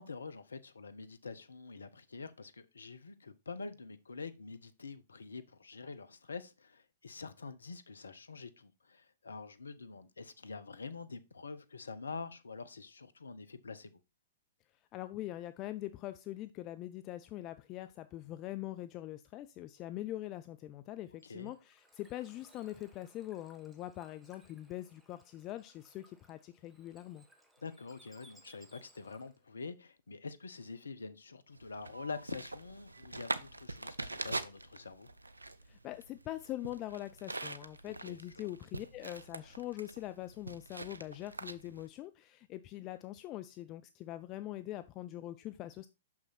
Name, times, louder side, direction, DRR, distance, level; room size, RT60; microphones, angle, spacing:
voice 1, 0.0-13.9 21.2-21.5 27.6-35.1 37.8-38.5, left 4 dB, 75° left, 0.8 m, -46 dB
voice 2, 14.9-27.2 35.7-45.9, left 14 dB, 30° left, 0.4 m, -43 dB
Bird / Water, 21.1-29.5, right 1 dB, 5° right, 1.3 m, -65 dB
sound 1, 31.5-41.9, right 2 dB, 80° right, 0.6 m, -44 dB
6.3 x 6.0 x 4.3 m
figure-of-eight pair, 110°, 0 cm